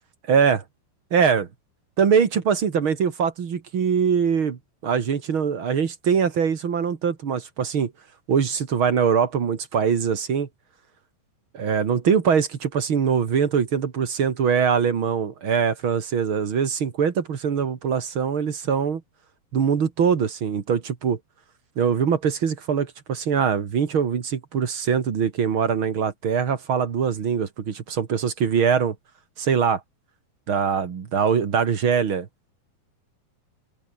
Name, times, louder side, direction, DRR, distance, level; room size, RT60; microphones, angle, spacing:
voice 1, 0.3-0.6 1.1-1.5 2.0-7.9 8.3-10.5 11.5-19.0 19.5-21.2 21.8-29.0 29.4-29.8 30.5-32.3, right 6 dB, 45° right, 2.0 m, -22 dB
open air
omnidirectional pair, 4.5 m